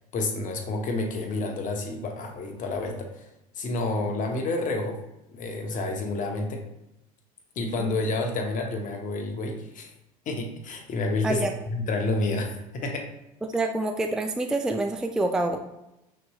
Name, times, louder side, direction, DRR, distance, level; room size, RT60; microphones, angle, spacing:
voice 1, 0.1-3.3 3.6-5.0 5.3-6.6 7.6-9.9 10.3-13.1, left 2 dB, 45° left, 3 dB, 0.9 m, -29 dB
voice 2, 13.4-15.6, right 2 dB, 5° right, 4 dB, 0.3 m, -27 dB
5.9 x 3.0 x 2.3 m, 0.89 s
hypercardioid pair, 85°, 19 cm